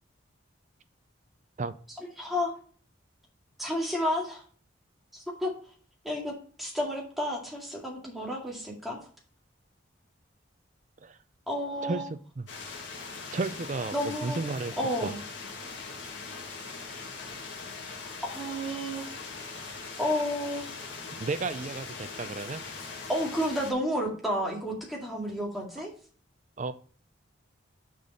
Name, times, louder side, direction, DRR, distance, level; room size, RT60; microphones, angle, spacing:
voice 1, 2.0-2.5 3.6-4.4 5.1-5.5 6.0-6.3 6.6-9.0 11.5-12.0 13.9-14.4 14.8-15.2 18.2-19.1 20.0-20.7 23.1-25.9, equal, ahead, -3 dB, 2.1 m, -31 dB
voice 2, 11.8-12.4 13.3-14.7 15.0-15.1 21.2-22.7 26.6-26.7, right 3 dB, 35° right, 10 dB, 0.4 m, -33 dB
sound 1, 12.5-23.7, left 4 dB, 65° left, 1.9 m, -41 dB
6.5 x 5.1 x 5.4 m, 0.43 s
head